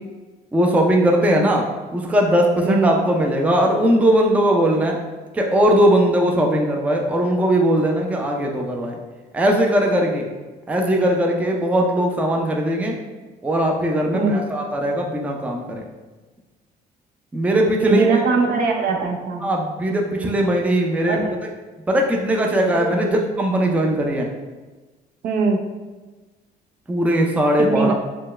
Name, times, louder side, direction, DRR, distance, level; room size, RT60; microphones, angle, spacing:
voice 1, 0.5-1.6 1.9-5.0 5.3-9.0 9.3-10.3 10.7-13.0 13.4-15.8 17.3-18.1 19.4-21.2 21.9-24.3 26.9-27.9, right 1 dB, 10° right, 1 dB, 0.4 m, -19 dB
voice 2, 14.1-14.5 17.8-19.4 21.1-21.4 22.8-22.9 25.2-25.6 27.6-27.9, right 4 dB, 60° right, 2 dB, 0.6 m, -21 dB
4.3 x 2.1 x 3.1 m, 1.3 s
cardioid pair, 110°, 17 cm